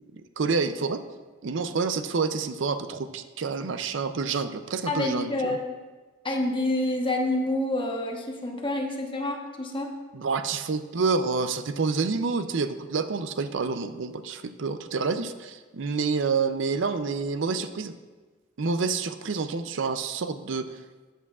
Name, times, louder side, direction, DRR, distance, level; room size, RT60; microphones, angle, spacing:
voice 1, 0.4-1.0 1.4-5.6 10.1-17.9 18.6-20.7, right 4 dB, 70° right, 10 dB, 0.5 m, -28 dB
voice 2, 4.9-5.8 6.2-9.9, left 1 dB, 25° left, 1 dB, 1.1 m, -28 dB
13.5 x 8.2 x 2.4 m, 1.3 s
head